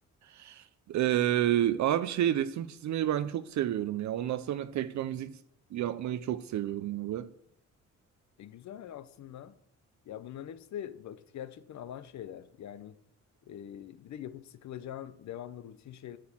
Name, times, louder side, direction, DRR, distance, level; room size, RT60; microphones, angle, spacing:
voice 1, 0.3-5.4 5.7-7.3, right 12 dB, 70° right, 0.6 m, -30 dB
voice 2, 8.4-9.5 10.1-13.0 13.5-16.2, left 10 dB, 70° left, 0.7 m, -43 dB
11.5 x 6.2 x 7.3 m
cardioid pair, 130°, 30 cm